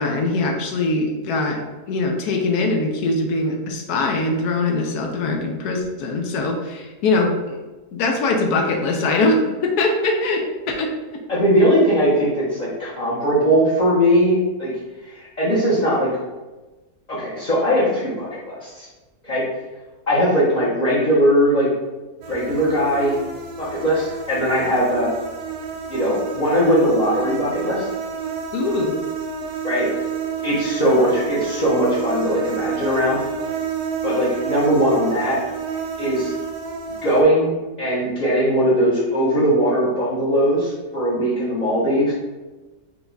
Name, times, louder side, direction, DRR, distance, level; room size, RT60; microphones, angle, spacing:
voice 1, 0.0-7.6 7.9-11.2 28.5-28.9, left 2 dB, 85° left, 2 dB, 1.2 m, -22 dB
voice 2, 11.3-14.7 15.0-16.1 17.1-18.9 19.2-19.4 20.1-21.7 22.3-23.2 23.6-25.1 25.9-27.9 29.6-29.9 30.4-33.2 34.0-35.4 36.0-36.3 37.0-42.1, equal, 35° left, -8 dB, 0.7 m, -19 dB
sound 1, 22.2-37.2, right 6 dB, 60° right, 0.8 m, -29 dB
4.8 x 2.3 x 3.9 m, 1.2 s
omnidirectional pair, 1.6 m